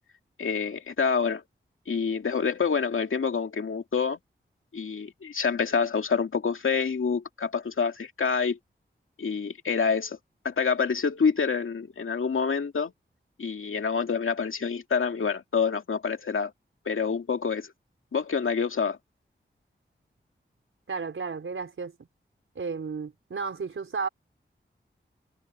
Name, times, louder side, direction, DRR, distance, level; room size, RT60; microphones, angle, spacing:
voice 1, 0.4-1.4 1.9-4.2 4.7-8.6 9.2-10.2 10.4-12.9 13.4-16.5 16.9-17.7 18.1-19.0, left 5 dB, 85° left, 2.3 m, -27 dB
voice 2, 20.9-21.9 22.5-24.1, right 5 dB, 85° right, 4.5 m, -33 dB
wide cardioid pair, 70°, 20 cm